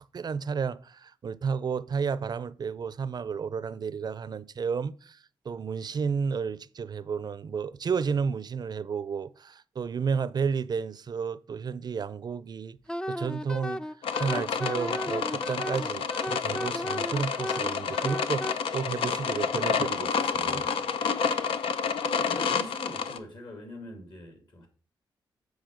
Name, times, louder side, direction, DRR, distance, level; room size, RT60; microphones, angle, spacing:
voice 1, 0.1-5.2 5.5-12.8 13.1-13.8 14.2-20.6, right 6 dB, 50° right, 0.5 m, -32 dB
Wind instrument woodwind instrument, 12.9-18.6, equal, 10° left, 0.4 m, -35 dB
sound 1, 14.0-23.2, left 6 dB, 85° left, 0.7 m, -29 dB
voice 2, 22.2-24.7, left 1 dB, 55° left, 2.5 m, -43 dB
7.9 x 5.1 x 5.0 m
cardioid pair, 65°, 9 cm